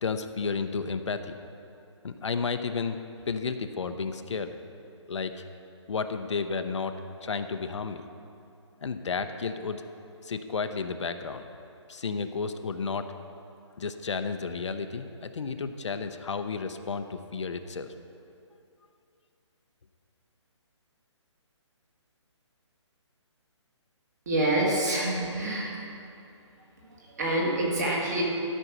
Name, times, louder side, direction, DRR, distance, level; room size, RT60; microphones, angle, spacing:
voice 1, 0.0-1.4 2.0-3.0 3.3-4.6 5.1-5.4 5.9-6.9 7.2-8.0 8.8-9.8 10.2-11.4 11.9-13.1 13.8-17.9, left 5 dB, 70° left, 8 dB, 0.7 m, -32 dB
voice 2, 24.3-25.9 26.8-28.2, right 1 dB, 35° right, -3 dB, 1.9 m, -27 dB
12.5 x 5.4 x 6.0 m, 2.6 s
hypercardioid pair, 175°, 16 cm